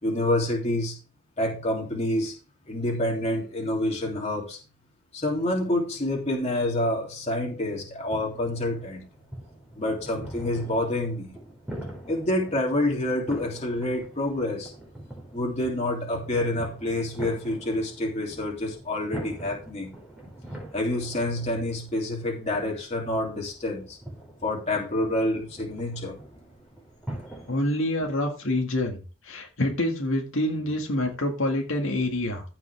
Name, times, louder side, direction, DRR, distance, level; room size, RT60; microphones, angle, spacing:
voice 1, 0.0-1.0 1.4-2.3 2.7-4.6 5.1-9.0 9.8-11.3 12.1-14.7 15.3-19.9 20.7-24.0 24.4-26.2, left 1 dB, 30° left, -1 dB, 3.0 m, -27 dB
sound 1, 8.1-27.6, right 1 dB, 5° right, 4.5 m, -43 dB
voice 2, 27.5-29.0 29.2-32.4, left 1 dB, 70° left, 1 dB, 2.0 m, -26 dB
15.0 x 6.0 x 3.5 m, 0.33 s
head